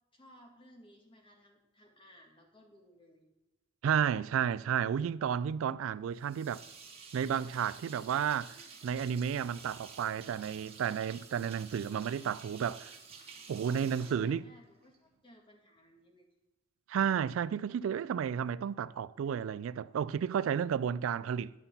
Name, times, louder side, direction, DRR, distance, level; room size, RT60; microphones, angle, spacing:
voice 1, 0.1-3.3 5.9-6.6 13.7-16.3, equal, 25° left, 1.9 m, -59 dB
voice 2, 3.8-6.6 7.1-8.6 8.8-12.9 13.5-14.4 16.9-21.5, right 8 dB, 75° right, 0.3 m, -32 dB
sound 1, 6.2-15.0, right 5 dB, 30° right, 1.6 m, -51 dB
11.0 x 5.6 x 7.0 m
head